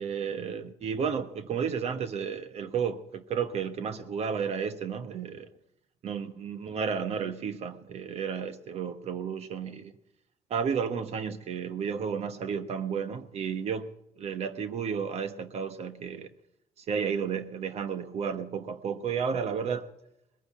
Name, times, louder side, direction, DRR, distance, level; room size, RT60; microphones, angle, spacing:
voice 1, 0.0-5.5 6.0-9.9 10.5-13.9 14.2-16.3 16.8-19.9, right 6 dB, 60° right, 1.2 m, -32 dB
20.5 x 9.5 x 7.3 m
cardioid pair, 120°, 12 cm